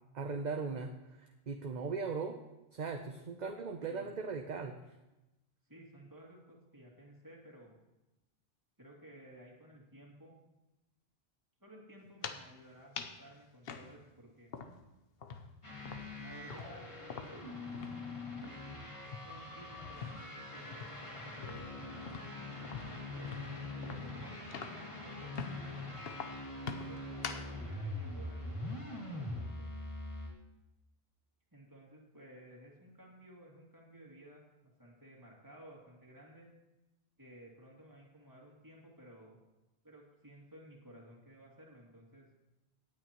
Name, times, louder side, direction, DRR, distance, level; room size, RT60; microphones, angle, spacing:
voice 1, 0.1-2.4 2.7-4.8, right 4 dB, 50° right, 5 dB, 0.8 m, -38 dB
voice 2, 3.8-4.1 5.7-7.7 8.8-10.3 11.6-14.5 16.2-18.3 19.2-21.8 22.4-25.5 26.9-29.7 31.5-36.5 37.2-39.4 39.8-42.3, right 1 dB, 20° right, -3 dB, 2.5 m, -55 dB
sound 1, 12.0-12.5 13.0-13.2 13.7-14.9 15.2-18.1 18.4-18.6 19.0-20.4 20.7-24.9 25.4-25.7 26.1-27.5, left 5 dB, 70° left, 1.0 m, -45 dB
sound 2, 15.6-30.3, left 2 dB, 30° left, 2.2 m, -43 dB
17.5 x 9.6 x 3.0 m, 1.0 s
omnidirectional pair, 1.0 m